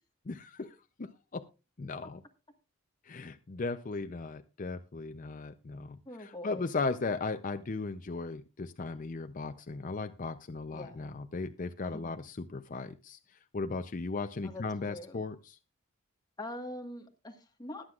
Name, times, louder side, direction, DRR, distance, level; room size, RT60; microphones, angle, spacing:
voice 1, 0.3-1.4 1.8-2.2 3.0-15.6, left 3 dB, 40° left, 9 dB, 0.5 m, -37 dB
voice 2, 6.0-6.7 10.7-11.1 11.9-12.2 14.4-15.2 16.4-17.9, left 1 dB, 20° left, 4 dB, 1.5 m, -43 dB
21.0 x 7.6 x 2.4 m, 0.30 s
head